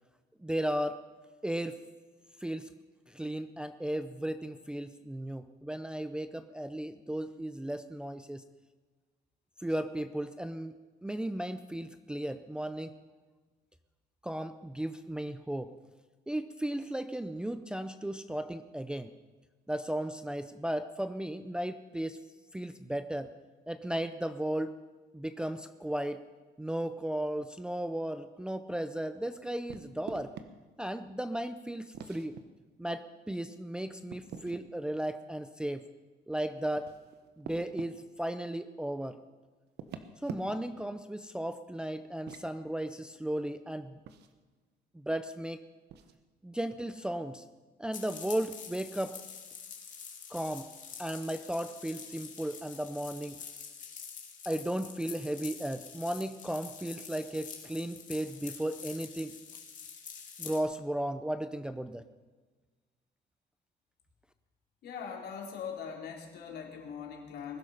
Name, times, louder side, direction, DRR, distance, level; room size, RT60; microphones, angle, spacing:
voice 1, 0.4-1.0 1.4-1.8 2.4-2.7 3.1-8.4 9.6-10.7 11.0-12.9 14.2-15.7 16.3-19.1 19.7-22.2 22.5-23.3 23.7-24.8 25.1-26.2 26.6-30.3 30.8-32.4 32.8-35.8 36.3-36.9 37.4-39.2 40.2-44.0 44.9-45.6 46.4-47.4 47.8-49.2 50.3-50.7 51.0-53.4 54.5-59.4 60.4-62.0, right 1 dB, 5° right, 9 dB, 0.5 m, -35 dB
sound 1, 29.7-30.5 31.9-32.4 34.1-34.7 36.6-37.9 39.7-40.8 42.1-42.5 44.1-44.3 45.9-46.2, right 8 dB, 70° right, 1.2 m, -45 dB
sound 2, 47.9-60.6, left 7 dB, 45° left, 2.4 m, -46 dB
voice 2, 64.8-67.6, left 7 dB, 65° left, 0 dB, 3.5 m, -41 dB
20.5 x 12.0 x 5.6 m, 1.3 s
cardioid pair, 155°, 18 cm